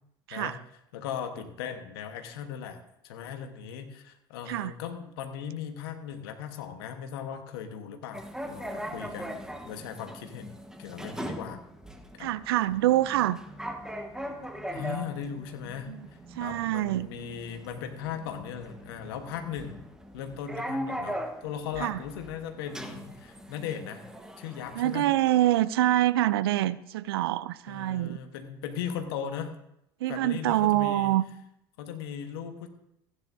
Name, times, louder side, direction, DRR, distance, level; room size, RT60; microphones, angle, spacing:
voice 1, 0.9-2.8 3.0-11.6 12.2-12.3 14.7-19.8 20.1-24.0 24.4-25.1 27.7-29.5 30.1-31.1 31.8-32.7, left 8 dB, 75° left, 7 dB, 1.3 m, -38 dB
sound 1, 8.1-25.7, equal, 5° right, 1.4 m, -40 dB
voice 2, 12.2-13.4 15.9-16.0 16.4-17.1 21.8-22.0 24.7-28.2 30.0-31.2, right 14 dB, 80° right, 17 dB, 0.5 m, -25 dB
15.5 x 9.6 x 2.7 m, 0.79 s
hypercardioid pair, 70°, 13 cm